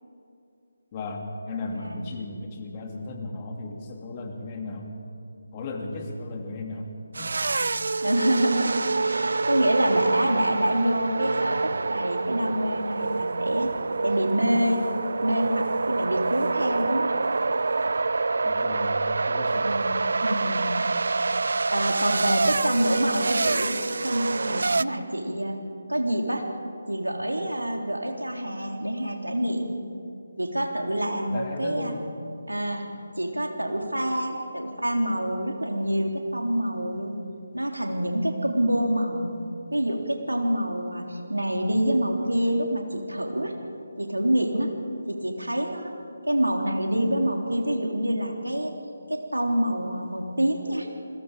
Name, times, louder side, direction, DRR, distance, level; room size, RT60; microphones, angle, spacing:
voice 1, 0.9-4.9 5.5-7.4 18.4-19.8 31.3-32.0, left 2 dB, 25° left, 2 dB, 2.8 m, -35 dB
voice 2, 1.7-2.1 8.0-13.7 14.0-14.8 15.2-17.1 19.6-20.7 21.7-25.6 25.9-26.5 26.9-29.7 30.4-31.9 32.5-32.8 33.2-37.2 37.5-39.3 39.7-43.5 44.0-44.7 45.1-45.9 46.3-48.7 49.1-50.9, right 1 dB, 90° right, 2 dB, 3.4 m, -26 dB
sound 1, 7.1-24.8, right 3 dB, 60° right, 0.4 m, -26 dB
29.0 x 21.0 x 5.0 m, 2.6 s
figure-of-eight pair, 150°, 0 cm